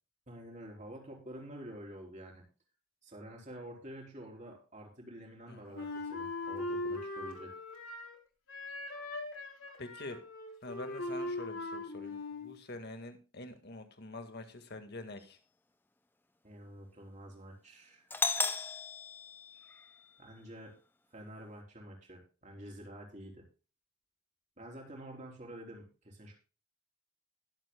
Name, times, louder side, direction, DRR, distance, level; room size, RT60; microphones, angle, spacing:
voice 1, 0.3-2.4 3.0-7.5 16.4-18.0 20.2-20.8 21.1-23.5 24.6-26.3, right 1 dB, 35° right, 0 dB, 3.8 m, -48 dB
Wind instrument woodwind instrument, 5.7-8.2 8.5-12.6, left 2 dB, 65° left, 3.3 m, -40 dB
voice 2, 9.8-10.2 10.6-15.4, left 2 dB, 50° left, 7 dB, 1.8 m, -46 dB
Doorbell, 18.1-20.1, left 4 dB, 10° left, 0.7 m, -35 dB
21.0 x 7.7 x 2.2 m, 0.33 s
head